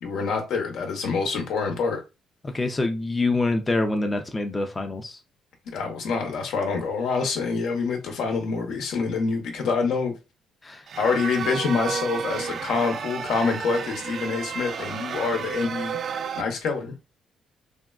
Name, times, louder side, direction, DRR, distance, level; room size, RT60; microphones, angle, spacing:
voice 1, 0.0-2.0 5.7-10.1 11.0-16.0 16.3-16.9, left 4 dB, 80° left, 0.8 m, -26 dB
voice 2, 2.4-5.2 10.6-10.8, left 2 dB, 20° left, 0.5 m, -25 dB
sound 1, 10.9-16.4, right 7 dB, 55° right, 0.3 m, -32 dB
3.4 x 2.2 x 2.3 m
cardioid pair, 95°, 0 cm